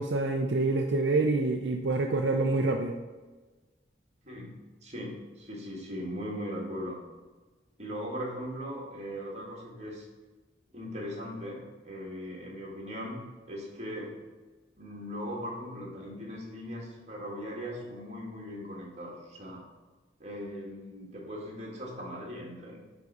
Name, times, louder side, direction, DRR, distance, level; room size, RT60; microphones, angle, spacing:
voice 1, 0.0-3.0, right 3 dB, 70° right, 3 dB, 0.5 m, -27 dB
voice 2, 4.2-4.6 4.8-7.0 7.8-10.1 10.7-13.2 13.5-14.2 14.8-19.6 20.2-22.8, equal, 40° right, -2 dB, 2.1 m, -39 dB
10.0 x 4.1 x 4.8 m, 1.3 s
head